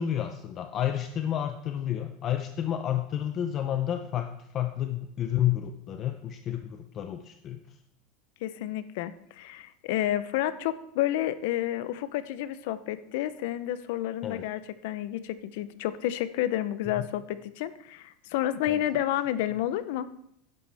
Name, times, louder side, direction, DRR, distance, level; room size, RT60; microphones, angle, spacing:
voice 1, 0.0-7.6 14.2-14.4 17.0-17.1 18.7-18.8, left 10 dB, 35° left, 6 dB, 0.7 m, -30 dB
voice 2, 8.4-20.1, left 12 dB, 70° left, 13 dB, 0.7 m, -30 dB
11.5 x 11.0 x 3.5 m, 0.74 s
supercardioid pair, 155°, 0 cm